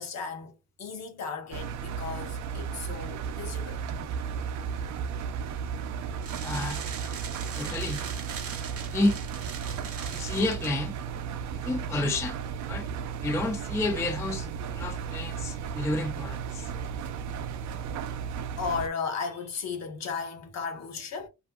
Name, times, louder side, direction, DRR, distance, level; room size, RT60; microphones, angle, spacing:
voice 1, 0.0-4.1 11.6-11.7 14.8-15.5 16.7-16.8 17.5-17.6 18.6-21.3, left 5 dB, 60° left, 0.8 m, -36 dB
Engine, 1.5-18.9, right 7 dB, 70° right, 0.5 m, -34 dB
sound 1, 6.2-10.7, right 6 dB, 50° right, 0.8 m, -40 dB
voice 2, 6.4-6.8 7.6-8.1 8.9-9.2 10.1-11.0 11.5-12.4 12.7-12.9 13.2-16.7, left 2 dB, 10° left, 0.3 m, -30 dB
2.5 x 2.5 x 2.3 m
cardioid pair, 90°, 30 cm